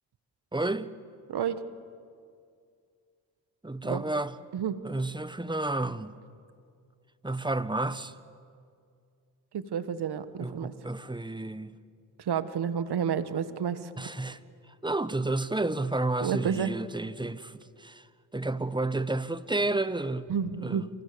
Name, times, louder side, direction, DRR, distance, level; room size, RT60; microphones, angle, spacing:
voice 1, 0.5-0.9 3.6-4.4 4.8-6.2 7.2-8.2 10.4-11.8 14.0-14.4 14.7-18.1 18.3-20.3 20.6-20.9, right 2 dB, 10° right, 1.3 m, -31 dB
voice 2, 1.3-1.6 3.8-4.0 4.5-4.8 9.5-10.7 12.3-13.8 16.2-16.7 20.3-20.9, right 7 dB, 60° right, 1.7 m, -30 dB
29.0 x 28.0 x 7.1 m
supercardioid pair, 55°, 43 cm